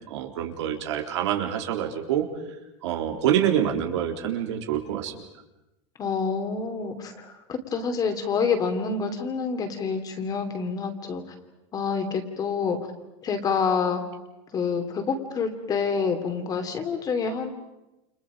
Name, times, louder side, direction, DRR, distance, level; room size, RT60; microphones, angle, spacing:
voice 1, 0.1-2.2 2.8-5.1, right 10 dB, 90° right, 3 dB, 3.8 m, -26 dB
voice 2, 6.0-11.2 11.7-12.8 13.2-14.0 14.5-17.5, left 5 dB, 25° left, 6 dB, 3.0 m, -27 dB
29.5 x 27.5 x 5.2 m, 0.96 s
supercardioid pair, 150°, 14 cm